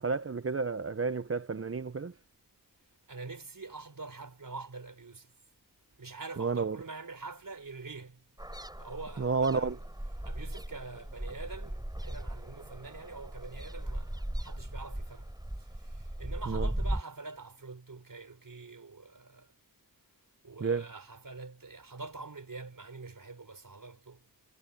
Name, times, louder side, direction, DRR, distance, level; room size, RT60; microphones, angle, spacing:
voice 1, 0.0-2.1 6.4-6.8 9.2-9.7 16.5-16.7 20.6-20.9, right 4 dB, 40° right, 0.7 m, -31 dB
voice 2, 3.1-5.3 6.0-8.2 8.8-9.8 10.2-15.3 15.6-19.5 20.4-24.2, right 3 dB, 60° right, 4.4 m, -45 dB
sound 1, 8.4-17.0, right 1 dB, 10° right, 3.9 m, -38 dB
wide cardioid pair, 60°, 36 cm